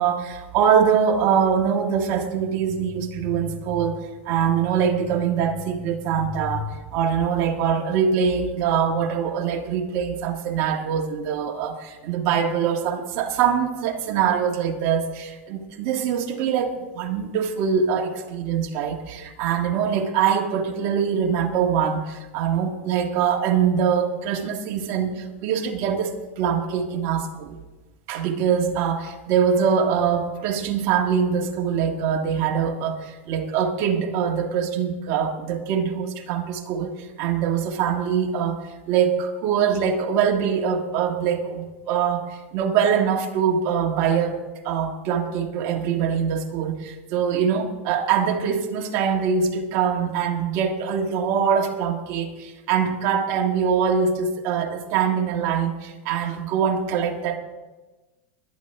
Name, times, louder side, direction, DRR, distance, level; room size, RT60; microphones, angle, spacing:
voice 1, 0.0-27.6 28.1-57.4, right 7 dB, 50° right, 3 dB, 1.6 m, -23 dB
23.0 x 9.4 x 3.4 m, 1.2 s
supercardioid pair, 140°, 7 cm